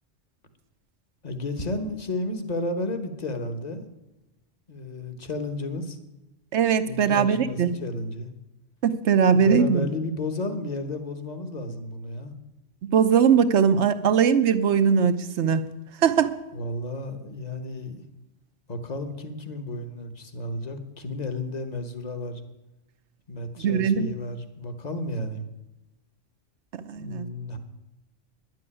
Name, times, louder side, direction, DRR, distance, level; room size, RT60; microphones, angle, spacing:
voice 1, 1.2-3.9 4.7-6.0 6.8-8.3 9.3-12.3 16.5-18.0 18.7-22.4 23.3-25.4 26.9-27.6, left 2 dB, 35° left, 8 dB, 1.2 m, -32 dB
voice 2, 6.5-7.7 8.8-9.9 12.9-15.6 16.0-16.3 23.6-24.1 26.8-27.3, right 7 dB, 70° right, 12 dB, 1.0 m, -20 dB
10.5 x 7.7 x 9.9 m, 0.97 s
omnidirectional pair, 1.3 m